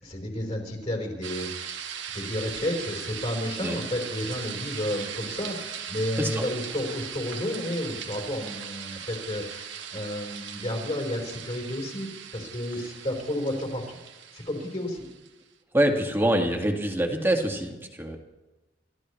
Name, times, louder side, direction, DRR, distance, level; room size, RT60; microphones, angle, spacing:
voice 1, 0.0-1.7 2.1-13.8 14.3-15.0, left 1 dB, 35° left, -1 dB, 4.3 m, -31 dB
sound 1, 1.2-15.3, right 8 dB, 75° right, 1.6 m, -39 dB
voice 2, 15.7-18.2, right 1 dB, 10° right, 2 dB, 1.9 m, -25 dB
30.0 x 14.5 x 3.2 m, 1.1 s
head